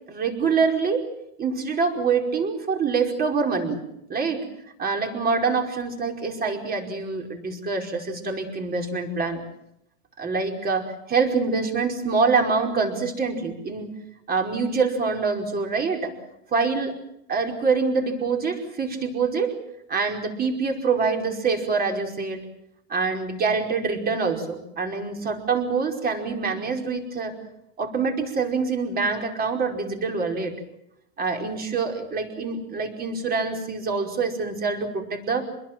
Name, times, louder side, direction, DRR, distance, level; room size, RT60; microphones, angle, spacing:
voice 1, 0.1-1.1 1.4-3.8 4.1-4.4 4.8-9.4 10.2-13.9 14.3-16.1 16.5-17.0 17.3-19.6 19.9-22.4 22.9-27.4 27.8-30.6 31.2-35.4, right 4 dB, 25° right, 3 dB, 5.1 m, -25 dB
27.0 x 21.5 x 7.7 m, 0.82 s
supercardioid pair, 140°, 35 cm